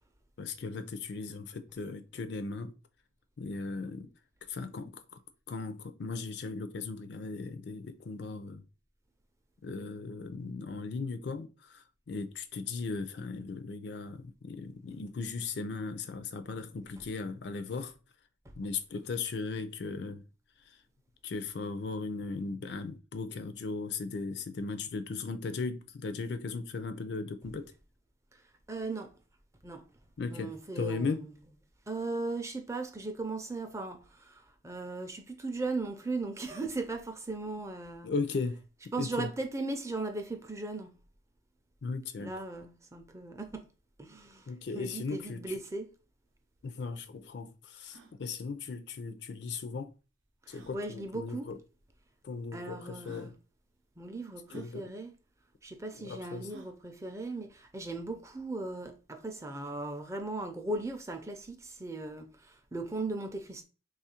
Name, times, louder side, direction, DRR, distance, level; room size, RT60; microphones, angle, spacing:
voice 1, 0.4-2.7 3.4-4.1 4.5-5.0 5.5-8.6 9.6-17.9 18.6-20.2 21.2-27.7 30.2-31.2 38.0-38.6 39.0-39.3 41.8-42.3 44.5-45.5 46.6-49.9 50.5-51.6 52.2-53.3 54.5-54.9 56.0-56.5, left 4 dB, 65° left, 0.4 m, -37 dB
voice 2, 28.7-29.1 29.6-29.8 30.3-31.3 31.9-38.1 38.9-40.9 42.2-43.7 44.0-44.5 44.7-45.9 50.5-51.5 52.5-53.3 54.0-55.1 55.6-63.6, right 2 dB, 15° right, 0.4 m, -37 dB
sound 1, 46.3-46.4 46.6-46.7 47.2-47.3 47.8-48.1 49.5-49.6 50.5-50.8 51.8-51.9 52.6-52.7 53.0-53.3 54.5-54.7 56.5-56.8, equal, 80° right, 0.6 m, -52 dB
3.0 x 2.4 x 4.3 m
head